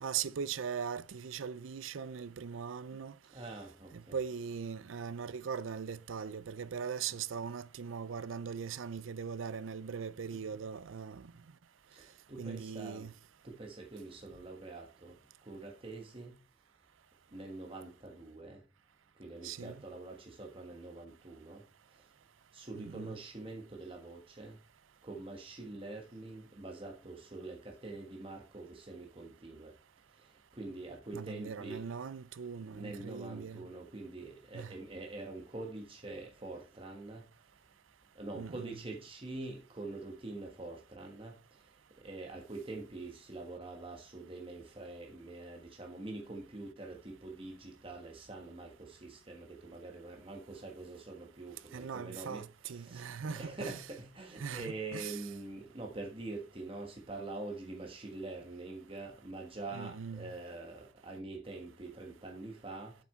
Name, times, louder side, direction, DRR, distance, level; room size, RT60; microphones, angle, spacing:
voice 1, 0.0-3.1 3.9-11.3 12.4-13.1 19.4-19.8 22.7-23.2 31.1-33.6 34.5-34.7 38.3-38.8 51.7-53.8 54.4-55.2 59.7-60.3, right 6 dB, 90° right, 0.5 m, -40 dB
voice 2, 3.3-4.2 10.3-10.6 12.0-13.1 13.4-15.1 15.5-16.3 17.3-18.6 19.2-21.6 22.5-24.6 25.0-29.7 30.5-31.8 32.6-37.2 38.1-41.3 42.0-62.9, right 2 dB, 30° right, 1.3 m, -45 dB
7.5 x 6.1 x 4.3 m
head